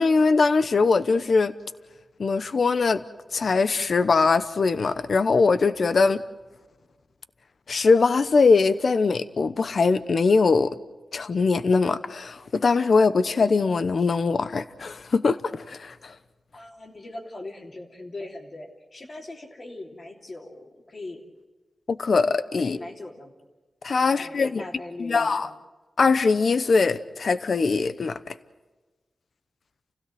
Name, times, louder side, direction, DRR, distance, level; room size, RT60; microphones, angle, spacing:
voice 1, 0.0-1.5 2.2-3.0 3.3-6.2 7.7-10.7 11.1-16.1 21.9-22.8 23.8-24.6 25.0-25.5 26.0-28.3, left 4 dB, 60° left, 0.9 m, -21 dB
voice 2, 16.5-21.2 22.6-23.3 24.0-25.5, left 2 dB, 40° left, 3.1 m, -40 dB
29.0 x 16.5 x 7.8 m
wide cardioid pair, 110°, 0 cm